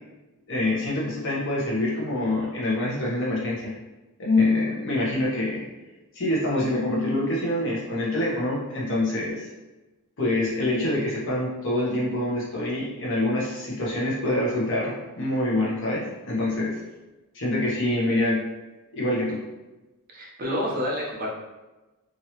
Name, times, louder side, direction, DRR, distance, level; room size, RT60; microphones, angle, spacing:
voice 1, 0.5-3.7 4.2-5.6 6.1-9.5 10.2-16.8 17.3-18.4 18.9-19.4, left 1 dB, 60° left, -5 dB, 1.0 m, -25 dB
voice 2, 20.1-21.3, equal, 45° right, -3 dB, 0.7 m, -28 dB
3.0 x 2.7 x 2.9 m, 1.1 s
head